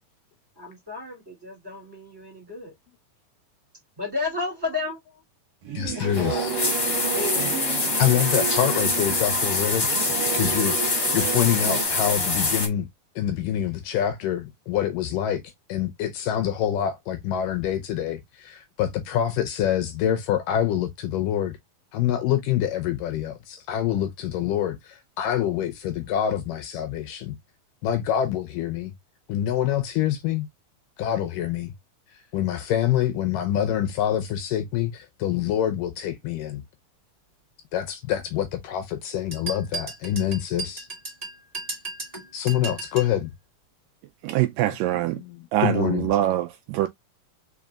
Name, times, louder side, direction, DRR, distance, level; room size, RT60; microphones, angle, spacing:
voice 1, 0.6-2.7 4.0-4.9 5.9-6.3 7.1-7.8 8.1-8.4, left 3 dB, 10° right, 2.0 m, -33 dB
Singing / Musical instrument, 5.6-11.8, right 8 dB, 65° right, 1.6 m, -32 dB
voice 2, 5.7-6.5 6.8-6.9 8.0-9.9 10.3-12.9 13.2-15.4 15.7-21.6 21.9-27.3 27.8-28.9 29.3-30.5 31.0-31.7 32.3-36.6 37.7-40.9 42.3-43.3 45.6-46.1, left 10 dB, 75° left, 2.1 m, -26 dB
sound 1, 6.0-12.7, left 3 dB, 35° left, 1.2 m, -25 dB
sound 2, 39.3-43.2, right 3 dB, 25° right, 0.8 m, -35 dB
voice 3, 44.2-45.2 45.5-46.9, right 14 dB, 80° right, 2.0 m, -23 dB
5.2 x 4.2 x 2.4 m
omnidirectional pair, 4.2 m